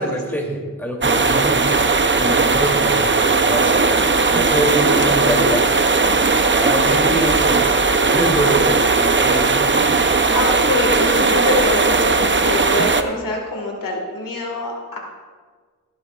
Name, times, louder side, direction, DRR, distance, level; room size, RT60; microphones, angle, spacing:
voice 1, 0.0-1.9 2.2-5.7 6.6-9.8, equal, 5° left, -1 dB, 2.8 m, -25 dB
sound 1, 1.0-13.0, right 4 dB, 35° right, 0.7 m, -17 dB
voice 2, 10.1-15.0, left 2 dB, 85° left, 0 dB, 1.8 m, -24 dB
17.5 x 10.0 x 2.4 m, 1.5 s
wide cardioid pair, 60°, 32 cm